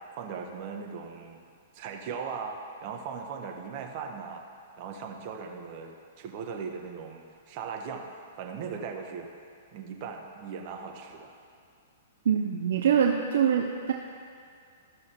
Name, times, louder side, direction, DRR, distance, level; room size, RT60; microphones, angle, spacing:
voice 1, 0.2-1.4 1.7-4.4 4.8-8.1 8.4-9.3 9.7-11.3, right 6 dB, 45° right, 2 dB, 1.1 m, -38 dB
voice 2, 12.3-13.9, right 8 dB, 65° right, 2 dB, 0.5 m, -24 dB
14.0 x 6.2 x 3.0 m, 2.3 s
hypercardioid pair, 115°, 0 cm